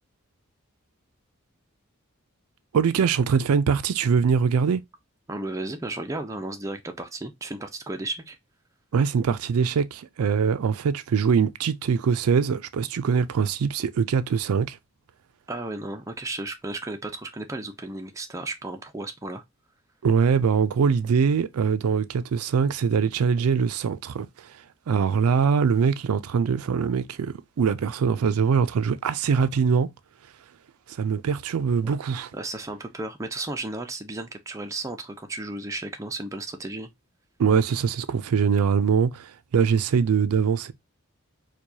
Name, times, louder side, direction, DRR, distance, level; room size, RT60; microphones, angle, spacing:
voice 1, 2.7-4.8 8.9-14.8 20.0-29.9 30.9-32.3 37.4-40.7, right 6 dB, 90° right, 0.4 m, -23 dB
voice 2, 5.3-8.4 15.5-19.4 32.3-36.9, right 2 dB, 15° right, 0.4 m, -34 dB
4.5 x 2.3 x 2.6 m
head